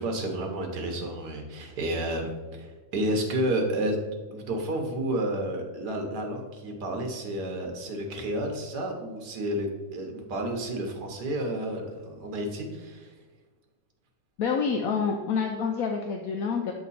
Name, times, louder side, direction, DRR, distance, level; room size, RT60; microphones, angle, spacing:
voice 1, 0.0-4.0 4.3-9.7 9.9-13.1, right 1 dB, 90° right, 3 dB, 1.6 m, -31 dB
voice 2, 14.4-16.7, left 5 dB, 70° left, 3 dB, 1.0 m, -27 dB
7.8 x 3.7 x 4.1 m, 1.4 s
omnidirectional pair, 1.7 m